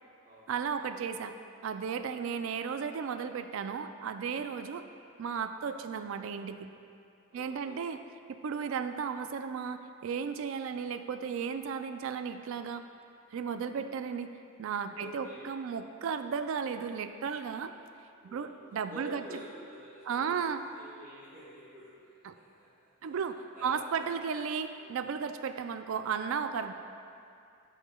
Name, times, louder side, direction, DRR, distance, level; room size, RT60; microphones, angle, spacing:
voice 1, 0.5-1.4 1.6-4.9 5.2-6.7 7.3-8.0 8.4-12.8 13.3-14.3 14.6-17.7 18.2-19.2 20.1-20.6 22.2-22.3 23.0-23.4 23.6-26.7, right 6 dB, 65° right, 9 dB, 0.3 m, -34 dB
voice 2, 7.3-7.8 13.6-13.9 14.9-15.5 18.2-18.6 18.9-22.7 23.0-23.1 23.5-24.1 24.8-25.0, right 1 dB, 35° right, -12 dB, 1.2 m, -49 dB
12.0 x 5.0 x 2.2 m, 2.5 s
head